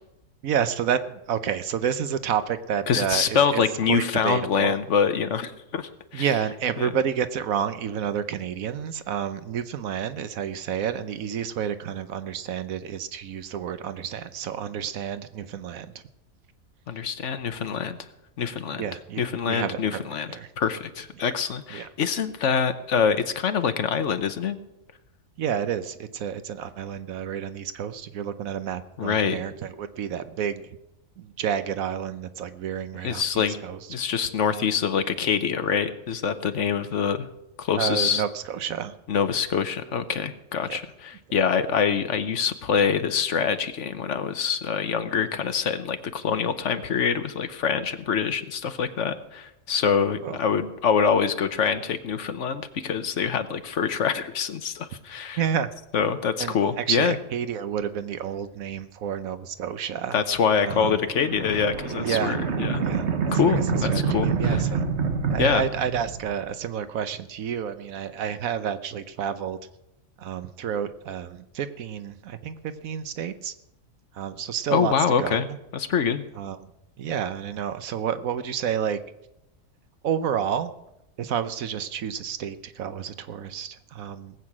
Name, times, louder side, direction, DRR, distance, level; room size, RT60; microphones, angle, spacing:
voice 1, 0.4-3.6 3.9-4.8 6.1-16.0 18.7-20.0 20.3-20.5 21.2-21.3 21.7-21.9 25.4-30.6 31.2-33.8 37.8-38.9 40.7-40.8 50.2-50.4 55.4-55.7 56.4-60.2 60.6-61.0 62.0-62.4 62.8-64.8 65.3-69.6 70.2-73.5 74.1-74.9 75.2-75.6 76.3-76.7 77.0-79.0 80.0-80.7 81.2-84.3, right 8 dB, 80° right, 12 dB, 1.2 m, -30 dB
voice 2, 2.9-6.3 6.8-6.9 16.9-18.0 18.4-18.8 19.2-24.6 29.0-29.4 33.0-33.6 33.9-37.3 37.6-38.2 39.1-55.4 55.9-57.1 60.1-62.8 63.3-64.6 65.4-65.6 74.7-75.5 75.7-76.2, left 6 dB, 60° left, 10 dB, 1.2 m, -25 dB
sound 1, 60.7-66.5, right 5 dB, 55° right, 1.3 m, -27 dB
19.0 x 8.3 x 6.0 m, 0.87 s
omnidirectional pair, 1.4 m